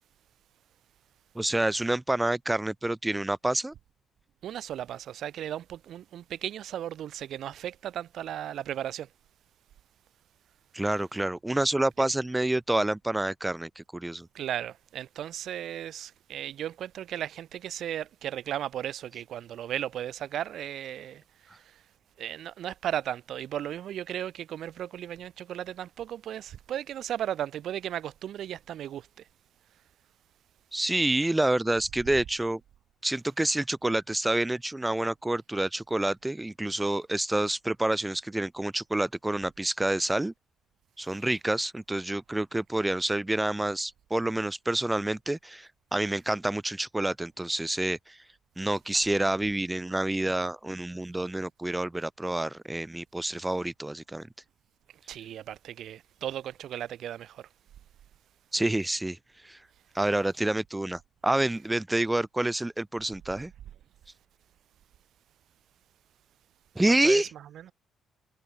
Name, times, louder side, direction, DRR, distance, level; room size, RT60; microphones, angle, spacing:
voice 1, 1.4-3.7 10.7-14.3 30.7-32.6 33.0-40.3 41.0-48.2 48.6-54.3 58.5-59.6 59.9-63.5 66.8-67.3, right 1 dB, 10° right, 3.4 m, -28 dB
voice 2, 4.4-9.1 14.3-21.8 22.2-29.3 55.1-57.5 67.0-67.4, right 11 dB, 70° right, 7.3 m, -36 dB
cardioid pair, 90°, 0 cm